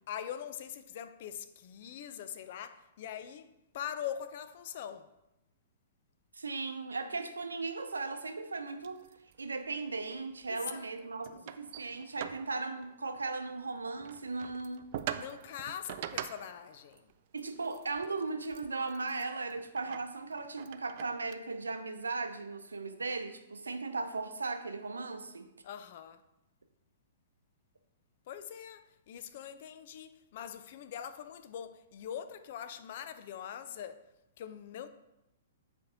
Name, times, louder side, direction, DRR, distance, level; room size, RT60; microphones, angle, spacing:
voice 1, 0.1-3.5 3.7-5.1 10.5-10.9 11.3-11.4 15.1-17.0 25.6-26.2 28.3-34.0 34.4-34.9, left 9 dB, 45° left, 0.5 m, -42 dB
voice 2, 6.4-9.0 9.4-14.9 17.3-25.5, right 3 dB, 75° right, 0.6 m, -37 dB
sound 1, 8.8-9.7 10.0-10.6 10.8-10.9 11.3-13.4 13.7-21.3, right 11 dB, 45° right, 0.3 m, -45 dB
7.8 x 4.5 x 4.0 m
figure-of-eight pair, 110°, 0 cm